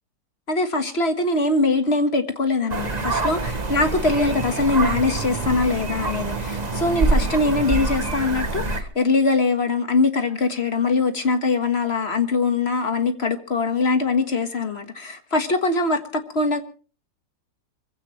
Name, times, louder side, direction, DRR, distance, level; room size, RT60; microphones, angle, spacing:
voice 1, 0.5-16.6, left 3 dB, 40° left, 1.7 m, -22 dB
Brent geese flying overhead in Essex Wetland, 2.7-8.8, right 3 dB, 25° right, 1.3 m, -25 dB
24.5 x 15.5 x 3.2 m
omnidirectional pair, 1.8 m